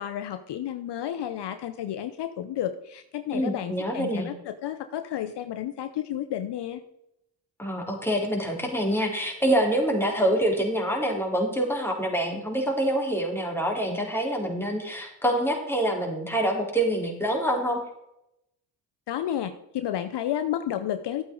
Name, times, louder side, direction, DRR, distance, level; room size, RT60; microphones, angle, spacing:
voice 1, 0.0-6.8 19.1-21.2, left 11 dB, 65° left, 9 dB, 0.8 m, -31 dB
voice 2, 3.3-4.3 7.6-17.8, right 1 dB, 5° left, 0 dB, 3.7 m, -26 dB
12.0 x 8.6 x 3.9 m, 0.82 s
supercardioid pair, 50°, 45 cm